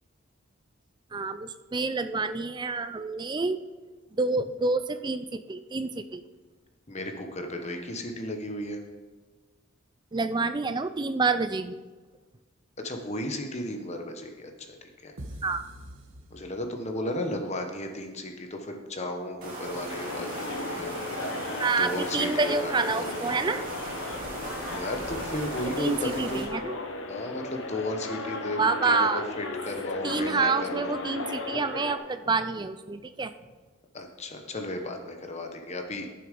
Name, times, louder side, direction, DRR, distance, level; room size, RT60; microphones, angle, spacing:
voice 1, 1.1-3.6 4.1-6.2 10.1-11.8 15.4-15.6 21.6-23.6 25.8-26.8 28.6-29.2 30.0-33.3, right 4 dB, 20° right, 11 dB, 0.4 m, -28 dB
voice 2, 6.9-8.8 12.8-15.1 16.3-21.0 21.8-23.1 24.7-26.5 27.1-30.9 33.9-36.1, left 1 dB, 30° left, 4 dB, 1.1 m, -34 dB
sound 1, 15.2-17.0, right 1 dB, 60° right, 1.2 m, -44 dB
sound 2, 19.4-26.4, right 1 dB, 40° right, 2.4 m, -37 dB
sound 3, 19.9-32.0, left 3 dB, 60° left, 0.9 m, -36 dB
10.5 x 7.0 x 5.2 m, 1.3 s
head